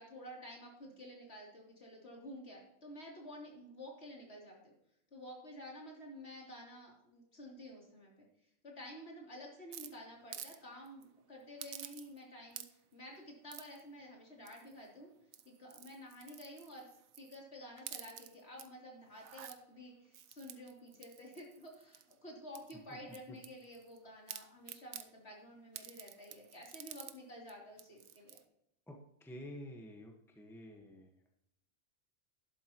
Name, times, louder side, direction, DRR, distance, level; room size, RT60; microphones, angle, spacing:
voice 1, 0.0-4.7 5.1-8.3 8.6-15.1 15.4-16.9 17.2-28.4, equal, 50° left, -2 dB, 3.5 m, -51 dB
sound 1, 9.7-10.6 10.9-11.0 11.6-12.2 12.5-12.9 13.5-13.8 14.5-14.9 15.2-17.4 17.8-18.7 19.1-19.6 20.1-22.1 22.5-24.0 24.3-25.1 25.7-27.2 27.5-27.6 27.8-28.4, right 10 dB, 85° right, 1.2 m, -50 dB
voice 2, 28.9-31.3, equal, ahead, 2 dB, 1.3 m, -50 dB
12.0 x 11.5 x 3.0 m, 0.79 s
omnidirectional pair, 1.4 m